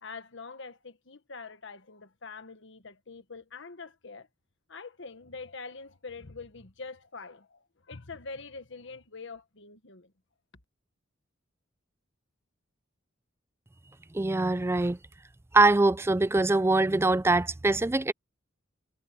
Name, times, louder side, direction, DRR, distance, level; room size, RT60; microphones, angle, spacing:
voice 1, 0.0-4.3 4.7-10.1, left 4 dB, 70° left, 1.6 m, -44 dB
voice 2, 14.1-15.0 15.5-18.1, right 2 dB, 15° right, 0.4 m, -23 dB
head